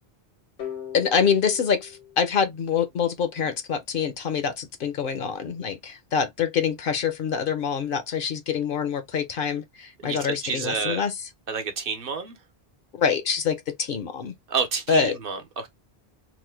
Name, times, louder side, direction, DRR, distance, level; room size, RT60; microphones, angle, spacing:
sound 1, 0.6-3.4, left 9 dB, 90° left, 1.4 m, -40 dB
voice 1, 0.9-11.1 12.9-14.3 14.9-15.2, left 6 dB, 65° left, 0.7 m, -25 dB
voice 2, 10.0-11.0 11.5-12.4 14.5-15.7, right 5 dB, 65° right, 0.9 m, -29 dB
3.0 x 2.1 x 3.2 m
omnidirectional pair, 1.0 m